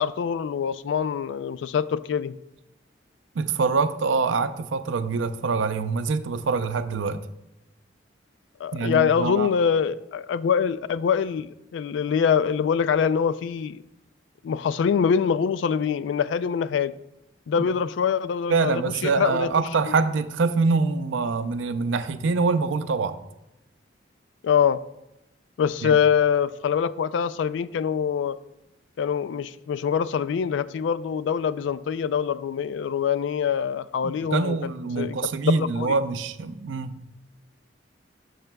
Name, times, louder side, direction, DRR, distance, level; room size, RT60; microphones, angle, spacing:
voice 1, 0.0-2.4 8.6-13.8 14.4-16.9 17.5-19.5 24.4-24.8 25.6-28.4 29.0-34.6 35.0-36.0, left 7 dB, 75° left, 0.3 m, -24 dB
voice 2, 3.3-7.2 8.7-9.5 17.6-17.7 18.5-23.2 25.8-26.0 34.0-36.9, right 4 dB, 85° right, 0.5 m, -25 dB
10.5 x 6.4 x 2.2 m
head